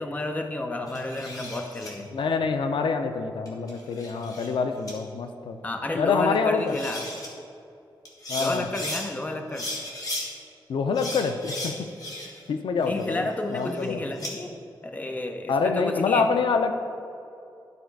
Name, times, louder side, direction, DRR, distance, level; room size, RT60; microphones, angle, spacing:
voice 1, 0.0-2.1 5.6-7.1 8.4-9.7 12.8-14.6 14.8-16.3, left 2 dB, 20° left, 4 dB, 0.6 m, -31 dB
sound 1, 0.9-1.9 3.5-4.5 4.9-5.0 6.3-6.4 6.7-7.3 8.0-9.0 9.5-10.3 10.9-12.5 12.8-14.3, left 1 dB, 45° left, 1.6 m, -36 dB
voice 2, 2.1-5.6 5.9-6.7 8.3-8.7 10.7-11.9 12.5-14.0 15.5-16.7, left 5 dB, 85° left, 7 dB, 0.5 m, -26 dB
12.0 x 4.1 x 4.6 m, 2.6 s
wide cardioid pair, 155°, 8 cm